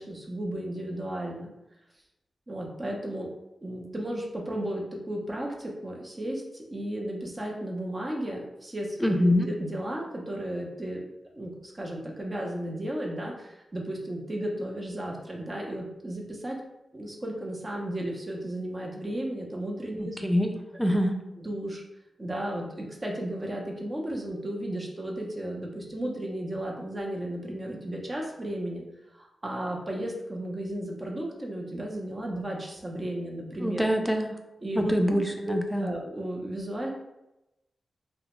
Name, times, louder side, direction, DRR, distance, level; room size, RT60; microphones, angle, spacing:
voice 1, 0.0-1.5 2.5-3.3 3.6-11.1 11.3-16.6 16.9-20.2 21.4-21.8 22.2-28.8 29.1-33.9 34.6-34.9 35.4-36.9, right 1 dB, 35° right, -1 dB, 0.6 m, -34 dB
voice 2, 9.0-9.5 20.0-21.2 33.6-34.4 34.8-35.9, equal, 5° left, 4 dB, 0.4 m, -25 dB
2.7 x 2.1 x 3.0 m, 0.92 s
cardioid pair, 60°, 0 cm